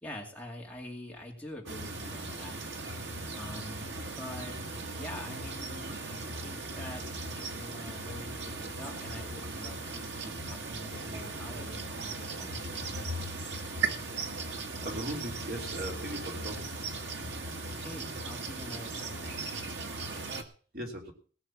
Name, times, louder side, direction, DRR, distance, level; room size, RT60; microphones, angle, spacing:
voice 1, 0.0-2.6 3.3-4.6 4.9-13.1 17.7-19.4, left 1 dB, 10° left, -1 dB, 2.4 m, -45 dB
sound 1, 1.7-20.4, right 3 dB, 85° right, 1.8 m, -38 dB
voice 2, 14.8-16.6 20.7-21.1, right 1 dB, 55° right, 1 dB, 2.9 m, -38 dB
18.0 x 6.3 x 7.2 m, 0.43 s
head